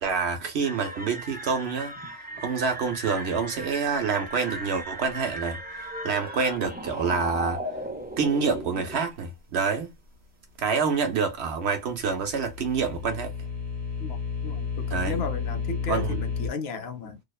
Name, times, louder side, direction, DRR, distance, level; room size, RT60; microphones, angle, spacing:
voice 1, 0.0-2.0 2.4-7.6 8.2-9.9 10.6-13.3 14.9-15.2 15.9-16.2, right 5 dB, 70° right, 1.0 m, -27 dB
sound 1, 0.6-9.0, right 1 dB, 15° right, 0.4 m, -36 dB
sound 2, 12.0-16.5, left 6 dB, 35° right, 1.0 m, -32 dB
voice 2, 14.4-17.2, left 4 dB, 70° left, 0.8 m, -34 dB
2.7 x 2.1 x 2.3 m
omnidirectional pair, 1.1 m